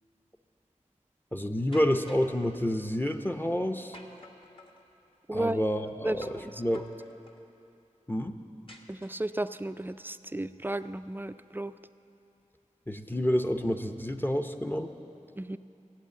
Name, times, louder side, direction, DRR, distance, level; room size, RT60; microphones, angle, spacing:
voice 1, 1.3-4.0 5.3-6.9 8.1-8.4 12.9-14.9, equal, 15° left, 5 dB, 0.7 m, -29 dB
sound 1, 1.7-2.4 3.9-4.8 6.2-6.5 6.7-7.4 8.7-9.4, left 1 dB, 40° left, 1.2 m, -50 dB
voice 2, 5.3-5.6 6.0-6.5 8.9-11.7 15.4-15.6, right 1 dB, 15° right, 12 dB, 0.4 m, -33 dB
14.5 x 8.3 x 8.3 m, 2.8 s
wide cardioid pair, 50°, 13 cm